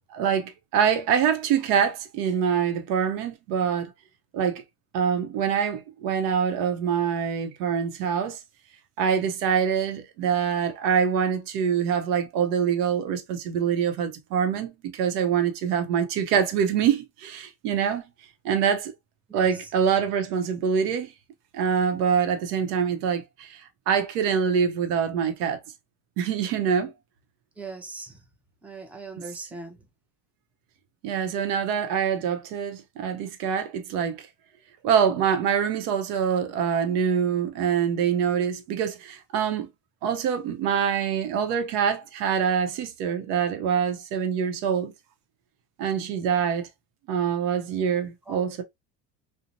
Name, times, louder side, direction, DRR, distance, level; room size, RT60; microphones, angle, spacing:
voice 1, 0.1-3.9 4.3-4.6 4.9-8.4 9.0-18.0 18.4-18.9 19.3-21.1 21.5-25.6 26.2-26.9 29.2-29.3 31.0-34.3 34.8-39.7 40.0-44.9 45.8-46.7 47.1-48.6, right 7 dB, 85° right, 0.7 m, -25 dB
voice 2, 27.6-28.2 28.6-29.8 48.3-48.6, right 3 dB, 5° right, 0.4 m, -39 dB
2.8 x 2.1 x 2.5 m
supercardioid pair, 115°, 46 cm